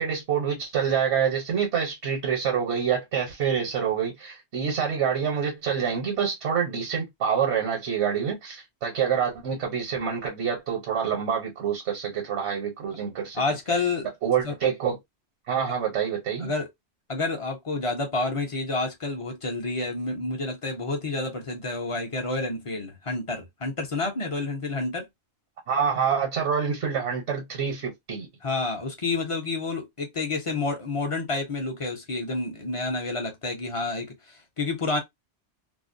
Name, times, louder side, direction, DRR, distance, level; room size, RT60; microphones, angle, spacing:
voice 1, 0.0-13.4 14.2-15.0 15.5-16.5 25.7-28.3, right 7 dB, 80° right, 1.1 m, -26 dB
voice 2, 13.3-14.1 14.4-14.5 16.4-16.7 17.1-25.1 28.4-35.0, left 3 dB, 40° left, 0.5 m, -29 dB
2.5 x 2.0 x 2.5 m
omnidirectional pair, 1.1 m